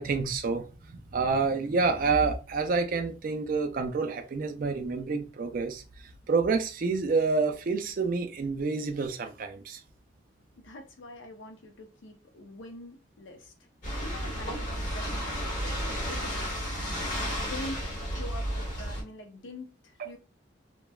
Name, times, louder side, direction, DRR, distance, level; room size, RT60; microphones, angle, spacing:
voice 1, 0.0-9.8 20.0-20.1, right 4 dB, 45° right, 0.4 m, -28 dB
voice 2, 10.6-13.7 14.0-20.2, left 1 dB, 75° left, 0.6 m, -45 dB
sound 1, 13.8-19.0, equal, 40° left, 1.5 m, -32 dB
3.0 x 2.1 x 2.2 m
head